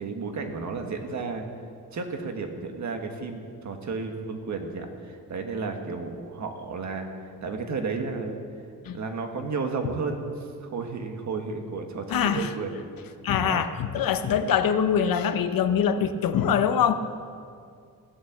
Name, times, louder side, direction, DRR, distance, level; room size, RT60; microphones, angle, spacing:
voice 1, 0.0-1.4 1.9-8.4 8.9-12.7 13.0-13.2 13.4-13.6, right 4 dB, 55° right, 4 dB, 1.6 m, -33 dB
voice 2, 12.1-12.5 13.2-17.0, left 8 dB, 75° left, 10 dB, 0.9 m, -23 dB
16.0 x 8.7 x 7.5 m, 2.3 s
wide cardioid pair, 155°, 35 cm